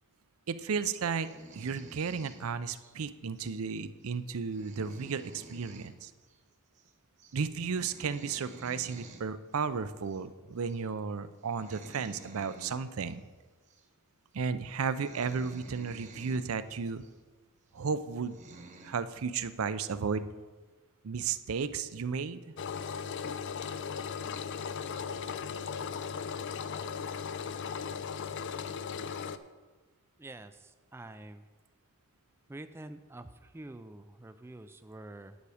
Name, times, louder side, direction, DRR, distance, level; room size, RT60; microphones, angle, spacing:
voice 1, 0.5-1.3 1.5-6.1 7.3-13.2 14.3-17.0 17.7-18.4 18.8-20.3 21.0-22.4, right 5 dB, 75° right, 13 dB, 0.5 m, -34 dB
sound 1, 1.1-2.9 3.4-3.6 4.0-4.1 4.4-6.0 6.2-6.4 6.6-6.9 7.2-7.4 7.7-9.3 10.0-10.2 10.7-10.9 11.4-13.1 13.7-13.8 14.4-14.5 14.8-16.4 17.0-17.1 17.8-17.9 18.2-18.9, right 2 dB, 35° right, 1.1 m, -51 dB
Engine, 22.6-29.4, left 6 dB, 55° left, 0.4 m, -37 dB
voice 2, 30.2-31.4 32.5-35.4, right 2 dB, 10° right, 9 dB, 0.3 m, -47 dB
9.4 x 8.3 x 4.9 m, 1.3 s
head